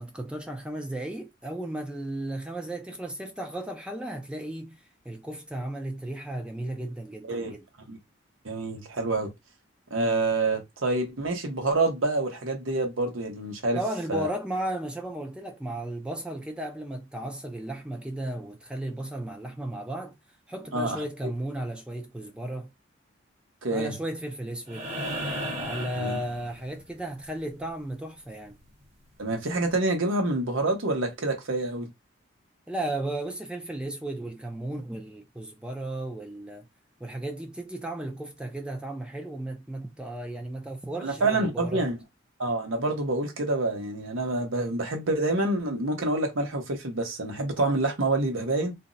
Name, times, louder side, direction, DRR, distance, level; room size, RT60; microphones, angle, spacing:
voice 1, 0.0-7.6 13.7-20.2 20.5-22.7 23.7-24.9 25.6-28.6 32.7-36.7 37.0-41.9, right 1 dB, 5° right, 0.3 m, -35 dB
voice 2, 7.2-7.5 7.9-8.0 8.4-9.3 9.9-13.8 14.1-14.3 20.7-21.0 23.6-23.9 26.0-26.2 29.2-31.9 41.0-42.0 42.4-48.7, right 2 dB, 85° right, 0.9 m, -27 dB
sound 1, 24.7-27.0 28.8-28.9, equal, 35° right, 1.0 m, -34 dB
2.5 x 2.0 x 3.8 m
head